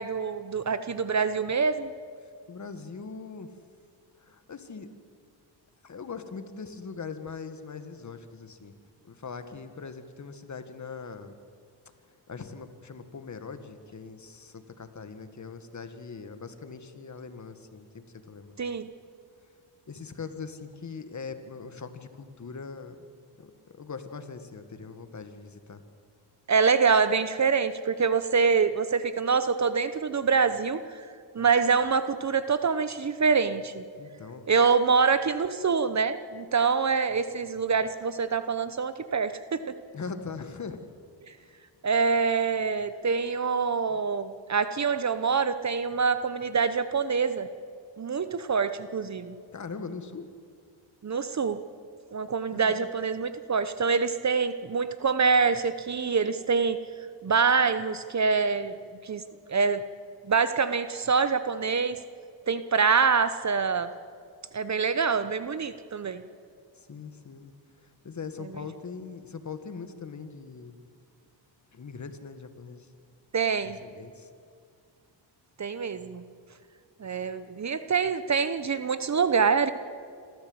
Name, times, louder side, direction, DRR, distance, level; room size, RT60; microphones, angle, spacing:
voice 1, 0.0-1.9 18.6-18.9 26.5-31.1 31.3-33.8 34.5-39.6 41.3-41.4 41.8-47.5 48.0-49.4 51.0-51.6 52.1-56.8 57.2-58.7 59.0-59.2 59.5-59.8 60.2-62.0 62.5-63.9 64.5-66.2 73.3-73.8 75.6-76.2 77.0-79.7, right 5 dB, 35° right, 12 dB, 0.9 m, -25 dB
voice 2, 2.2-3.5 4.2-4.9 5.8-8.7 9.0-11.3 12.3-18.6 19.9-22.9 23.4-25.8 34.0-34.5 39.9-40.8 41.4-41.5 43.9-44.0 49.5-50.3 52.5-52.9 66.8-67.5 67.8-70.8 71.7-72.9 73.6-74.3, left 5 dB, 35° left, 9 dB, 1.7 m, -41 dB
26.5 x 14.5 x 7.9 m, 2.3 s
cardioid pair, 95°, 47 cm